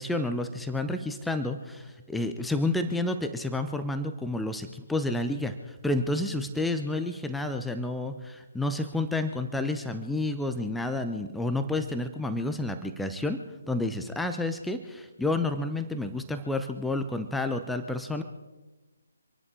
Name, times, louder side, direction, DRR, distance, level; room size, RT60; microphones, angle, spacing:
voice 1, 0.0-18.2, left 2 dB, 5° left, 7 dB, 0.7 m, -30 dB
26.5 x 11.0 x 4.9 m, 1.2 s
figure-of-eight pair, 140°, 0 cm